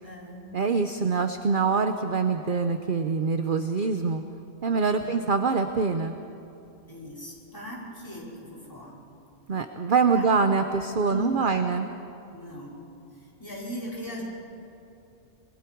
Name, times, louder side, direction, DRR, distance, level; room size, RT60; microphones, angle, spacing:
voice 1, 0.0-0.5 5.0-5.1 6.9-9.0 10.1-10.3 11.0-11.7 12.3-12.7 13.1-14.2, equal, 15° left, -6 dB, 5.3 m, -39 dB
voice 2, 0.5-4.2 4.6-6.2 9.5-11.9, right 5 dB, 45° right, 7 dB, 0.8 m, -24 dB
26.5 x 21.5 x 4.6 m, 2.8 s
omnidirectional pair, 1.4 m